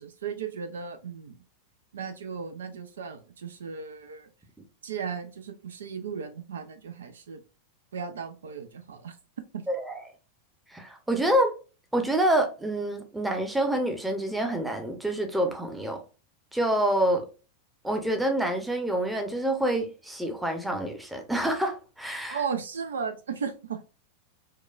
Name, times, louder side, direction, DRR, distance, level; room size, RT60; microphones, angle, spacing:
voice 1, 0.0-1.4 1.9-4.3 4.8-7.4 7.9-9.2 22.3-23.8, right 6 dB, 65° right, 0.4 m, -35 dB
voice 2, 9.7-10.0 10.7-11.5 11.9-16.0 16.5-17.3 17.8-22.4, right 1 dB, 5° right, 0.7 m, -27 dB
4.5 x 2.2 x 2.4 m
figure-of-eight pair, 90°, 0 cm